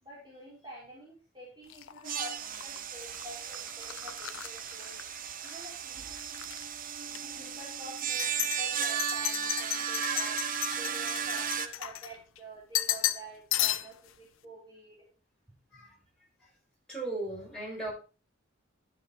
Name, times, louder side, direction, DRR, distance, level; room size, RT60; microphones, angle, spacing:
voice 1, 0.0-5.0 5.4-6.0 7.2-15.0, right 1 dB, 20° right, -6 dB, 4.1 m, -48 dB
sound 1, 1.7-5.7 6.0-6.6 7.1-7.2 8.0-12.4 12.7-13.3 13.5-14.1, left 13 dB, 80° left, 0.7 m, -34 dB
sound 2, 2.0-11.7, right 8 dB, 45° right, 0.8 m, -35 dB
voice 2, 16.9-17.9, right 2 dB, 5° left, -6 dB, 7.3 m, -36 dB
12.5 x 6.4 x 4.5 m, 0.35 s
head